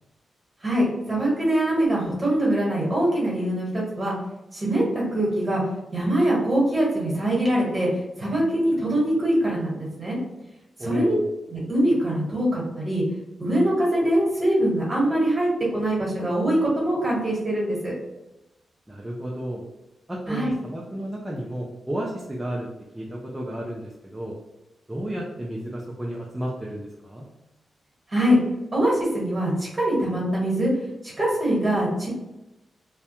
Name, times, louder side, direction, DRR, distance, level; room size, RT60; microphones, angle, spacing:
voice 1, 0.6-4.1 4.5-5.6 5.9-7.9 8.2-10.2 10.8-11.1 11.5-13.0 13.4-17.9 20.3-20.5 28.1-28.4 28.7-30.7 31.2-32.1, right 1 dB, 30° right, -5 dB, 1.4 m, -23 dB
voice 2, 10.8-11.2 18.9-19.6 20.1-22.7 22.9-24.4 24.9-27.3, right 1 dB, 10° right, -3 dB, 0.4 m, -32 dB
2.2 x 2.1 x 2.8 m, 0.94 s
cardioid pair, 90°, 0 cm